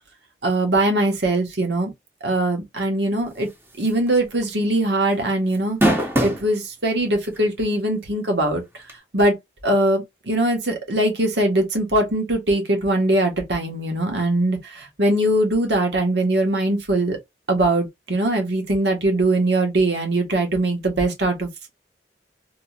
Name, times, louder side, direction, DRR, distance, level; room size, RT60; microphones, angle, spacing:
voice 1, 0.4-1.9 2.2-3.5 3.8-5.8 6.2-8.6 9.1-9.3 9.6-17.2 17.5-21.5, right 1 dB, 75° right, 1.4 m, -21 dB
sound 1, 3.8-4.1 4.4-4.5 5.5-6.5 7.2-7.3 8.9-9.0, right 1 dB, 15° right, 1.0 m, -20 dB
3.7 x 3.0 x 2.4 m
head